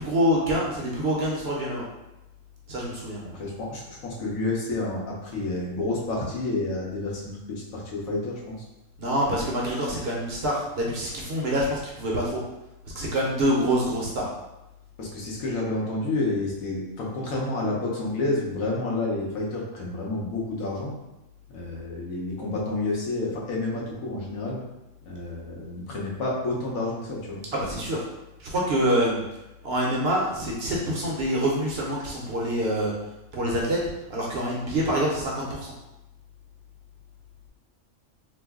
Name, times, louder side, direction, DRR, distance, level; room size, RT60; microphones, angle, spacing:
voice 1, 0.0-1.8 2.7-3.2 9.0-12.4 12.9-14.3 27.5-28.0 28.4-29.2 29.6-32.9 33.3-33.8 34.1-35.7, equal, 60° right, -3 dB, 0.7 m, -26 dB
voice 2, 3.2-8.6 15.0-20.9 21.5-24.6 25.1-27.4, left 2 dB, 85° left, -3 dB, 1.2 m, -29 dB
3.0 x 2.0 x 3.5 m, 0.95 s
omnidirectional pair, 1.4 m